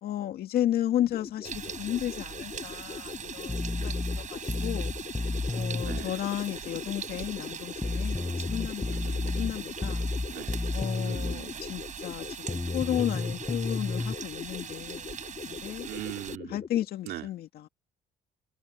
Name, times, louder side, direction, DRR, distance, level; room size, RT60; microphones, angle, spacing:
voice 1, 0.0-4.9 5.5-8.2 8.5-9.0 9.4-10.0 10.7-15.1 15.4-15.9 16.5-17.7, left 12 dB, 65° left, 2.0 m, -33 dB
sound 1, 1.0-16.9, left 6 dB, 35° left, 1.6 m, -42 dB
sound 2, 1.4-16.4, right 8 dB, 45° right, 7.5 m, -41 dB
sound 3, 3.5-6.1 7.8-11.4 12.5-14.1, left 3 dB, 10° left, 0.4 m, -31 dB
voice 2, 5.8-6.1 8.9-9.3 10.3-10.6 11.0-11.5 15.8-16.6 17.1-17.3, right 14 dB, 75° right, 2.6 m, -40 dB
cardioid pair, 110°, 17 cm